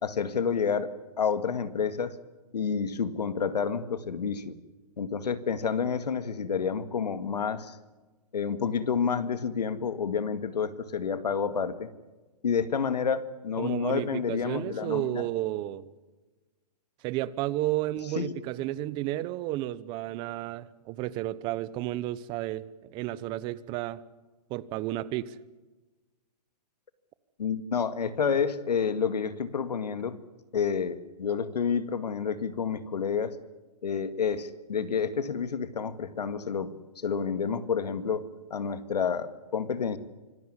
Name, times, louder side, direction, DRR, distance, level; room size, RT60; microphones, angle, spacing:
voice 1, 0.0-2.2 2.5-4.6 5.0-7.8 8.3-11.9 12.4-15.2 18.2-18.3 27.4-30.2 30.5-33.4 33.8-40.0, left 6 dB, 85° left, 12 dB, 2.0 m, -29 dB
voice 2, 13.6-15.9 17.0-24.0 24.5-25.4, right 15 dB, 25° right, 18 dB, 0.9 m, -32 dB
26.0 x 15.0 x 9.8 m, 1.2 s
hypercardioid pair, 150°, 20 cm